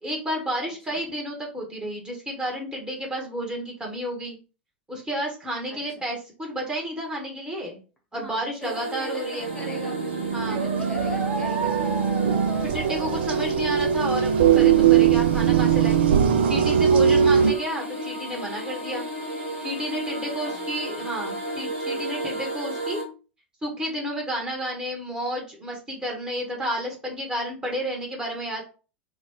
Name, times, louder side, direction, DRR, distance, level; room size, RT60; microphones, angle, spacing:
voice 1, 0.0-4.4 4.9-7.8 8.1-9.5 10.3-10.6 12.6-16.0 16.4-19.0 19.6-23.0 23.6-28.6, equal, 15° right, -1 dB, 1.1 m, -31 dB
voice 2, 0.6-1.0 5.7-6.1 8.1-10.0 10.4-12.1 17.2-17.4 20.2-20.6, equal, 10° left, -1 dB, 1.0 m, -42 dB
sound 1, 8.6-23.0, equal, 90° right, 1.0 m, -34 dB
sound 2, 9.5-17.5, right 8 dB, 60° right, 0.3 m, -21 dB
sound 3, 10.5-13.3, right 3 dB, 35° right, 1.5 m, -33 dB
3.0 x 2.2 x 3.5 m, 0.34 s
figure-of-eight pair, 85°, 6 cm